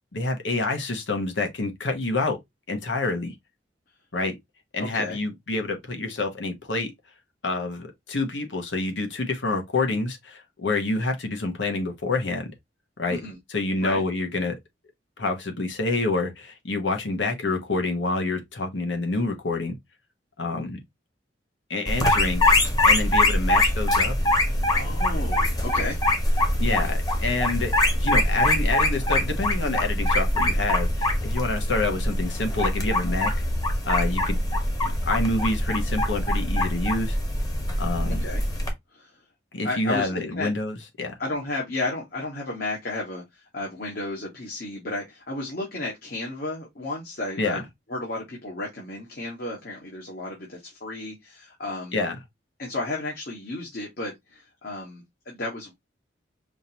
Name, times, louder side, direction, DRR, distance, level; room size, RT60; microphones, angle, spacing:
voice 1, 0.1-2.4 2.7-3.3 4.1-4.3 4.7-6.9 7.4-12.5 13.0-13.2 13.5-14.5 15.2-19.8 20.4-20.8 21.7-22.4 22.9-24.1 26.6-33.3 33.9-34.4 34.8-37.2 37.8-38.3 39.5-41.1 47.4-47.6 51.9-52.1, left 2 dB, 90° left, 1.1 m, -27 dB
voice 2, 4.8-5.2 13.1-13.4 13.8-14.0 24.7-26.0 38.1-38.4 38.9-39.2 39.6-40.5 41.2-47.6 47.9-52.0 52.6-55.7, left 2 dB, 55° left, 1.5 m, -33 dB
sound 1, 21.9-38.7, left 1 dB, 20° left, 1.0 m, -23 dB
5.1 x 2.7 x 2.9 m
head